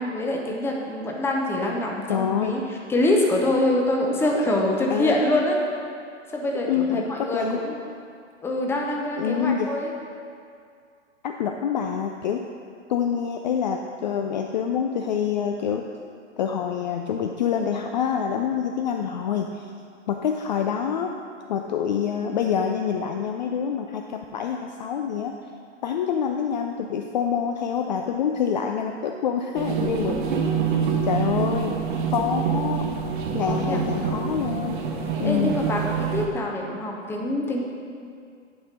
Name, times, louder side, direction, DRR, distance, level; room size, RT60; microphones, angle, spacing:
voice 1, 0.0-2.6 2.9-5.6 6.3-7.7 8.4-9.9 33.4-33.8 35.2-37.7, left 1 dB, 5° left, -1 dB, 0.7 m, -25 dB
voice 2, 2.1-2.6 4.5-4.6 4.9-5.2 6.7-7.6 9.2-9.7 11.2-12.4 12.9-15.9 16.4-19.7 20.1-21.2 21.5-25.4 25.8-30.2 31.0-31.8 32.1-32.8 33.3-34.8 35.2-35.6, left 7 dB, 40° left, 3 dB, 0.4 m, -26 dB
sound 1, 29.5-36.3, right 6 dB, 45° right, 1.0 m, -26 dB
10.5 x 4.3 x 5.0 m, 2.3 s
figure-of-eight pair, 115°, 37 cm